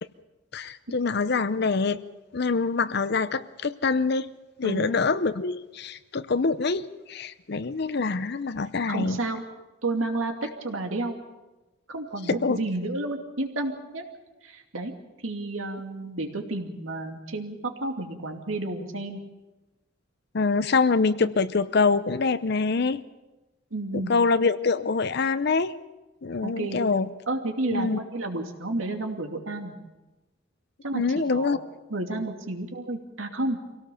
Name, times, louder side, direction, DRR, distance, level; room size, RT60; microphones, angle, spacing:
voice 1, 0.5-2.0 2.3-4.3 4.6-9.2 12.3-12.6 20.3-23.0 23.9-25.8 26.2-27.1 27.7-28.0 30.9-31.6, left 4 dB, 55° left, 13 dB, 0.6 m, -25 dB
voice 2, 8.9-9.4 9.8-10.3 10.6-11.2 11.9-14.0 14.4-14.9 15.2-19.2 23.7-24.1 26.4-26.8 27.3-29.7 30.8-31.6 31.9-33.6, right 2 dB, 85° right, 4 dB, 2.5 m, -31 dB
24.5 x 17.5 x 7.0 m, 1.1 s
head